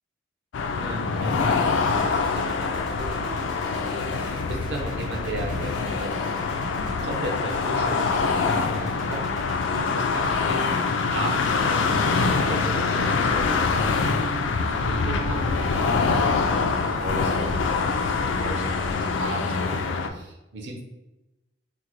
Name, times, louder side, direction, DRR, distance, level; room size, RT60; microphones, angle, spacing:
sound 1, 0.5-20.1, left 4 dB, 75° left, 0.3 m, -25 dB
voice 1, 0.8-6.1 7.0-9.2 9.7-10.7 11.1-20.8, right 1 dB, 65° right, 0 dB, 0.7 m, -36 dB
sound 2, 1.5-11.8, right 1 dB, 85° right, 1.3 m, -42 dB
Wind instrument woodwind instrument, 10.9-19.0, right 2 dB, 10° right, 0.3 m, -40 dB
3.8 x 2.1 x 3.1 m, 0.99 s
head